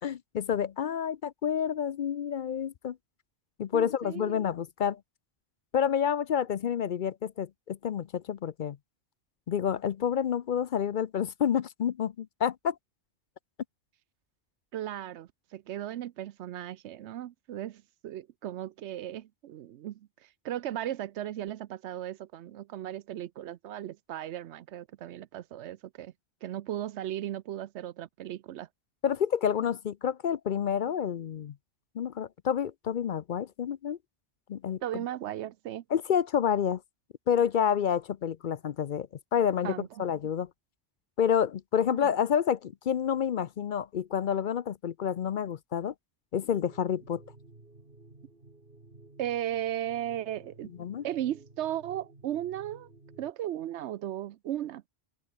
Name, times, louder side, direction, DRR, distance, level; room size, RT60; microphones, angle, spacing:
voice 1, 0.0-3.0 3.6-5.0 5.7-8.8 9.5-12.8 29.0-31.5 31.9-34.0 34.5-35.0 35.9-36.8 37.3-40.5 41.2-45.9 46.3-47.2 50.8-51.0, left 8 dB, 55° left, 0.6 m, -29 dB
voice 2, 3.7-4.4 14.7-20.1 20.4-26.1 26.4-28.7 34.8-35.8 39.6-40.0 41.9-42.1 49.2-50.7 51.0-52.9 53.2-54.9, right 12 dB, 80° right, 0.9 m, -36 dB
sound 1, 46.5-53.3, right 2 dB, 50° right, 3.4 m, -54 dB
omnidirectional pair, 1.2 m